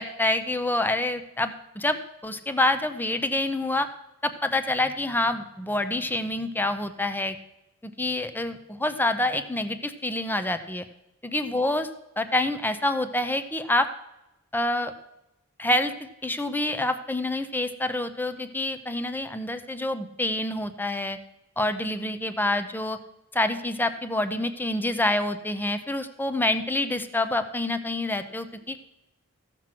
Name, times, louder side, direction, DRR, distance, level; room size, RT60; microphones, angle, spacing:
voice 1, 0.0-3.9 4.2-7.4 7.8-10.9 11.2-11.9 12.2-13.9 14.5-14.9 15.6-21.2 21.6-23.0 23.3-28.8, left 1 dB, 10° left, 10 dB, 0.6 m, -27 dB
15.0 x 6.1 x 6.0 m, 0.91 s
head